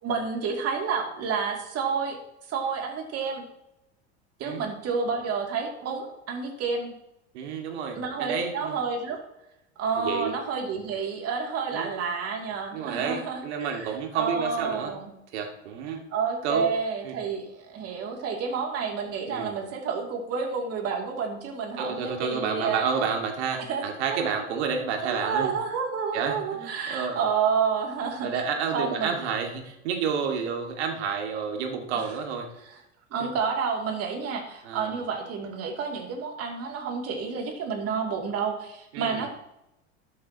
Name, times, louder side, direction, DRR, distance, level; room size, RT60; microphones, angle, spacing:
voice 1, 0.0-2.2 2.5-3.4 4.4-6.9 7.9-9.2 9.8-15.1 16.1-23.0 23.7-23.8 24.1-24.2 25.0-28.4 28.7-29.1 33.1-39.3, right 5 dB, 45° right, 1 dB, 2.9 m, -30 dB
voice 2, 7.3-8.8 10.0-10.3 11.7-11.9 12.7-14.9 15.3-16.0 16.4-16.7 17.0-17.1 19.3-19.6 21.8-25.5 26.1-27.2 28.2-32.5 33.2-33.3 34.6-35.0 38.9-39.3, right 6 dB, 75° right, 3 dB, 2.2 m, -30 dB
12.5 x 7.7 x 3.0 m, 0.87 s
hypercardioid pair, 95°, 34 cm